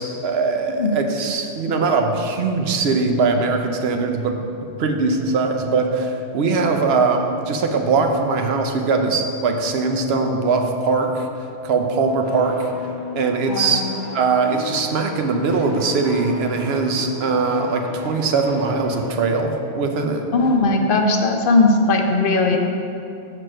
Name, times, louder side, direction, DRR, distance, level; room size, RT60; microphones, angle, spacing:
voice 1, 0.0-11.3 11.6-12.7 13.2-13.8 14.1-20.3, right 4 dB, 70° right, 4 dB, 0.9 m, -21 dB
sound 1, 12.2-19.4, left 2 dB, 20° left, 1.9 m, -36 dB
voice 2, 13.5-13.8 20.3-22.6, left 3 dB, 55° left, 3 dB, 0.8 m, -18 dB
6.4 x 4.6 x 6.2 m, 2.6 s
omnidirectional pair, 1.2 m